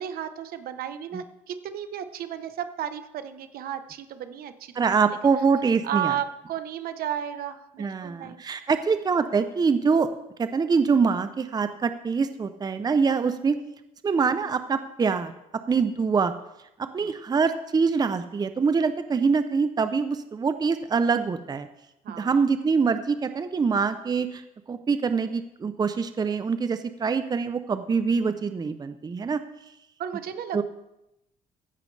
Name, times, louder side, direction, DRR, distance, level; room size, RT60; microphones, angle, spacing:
voice 1, 0.0-5.2 5.8-8.4 17.0-17.1 22.0-22.4 30.0-30.6, right 9 dB, 70° right, 10 dB, 1.0 m, -33 dB
voice 2, 4.8-6.2 7.8-10.1 10.4-13.6 14.0-15.3 15.7-16.3 16.8-21.7 22.2-24.4 24.7-29.4 30.5-30.6, right 5 dB, 25° right, 10 dB, 0.6 m, -24 dB
15.0 x 10.5 x 3.3 m, 0.88 s
cardioid pair, 105°, 16 cm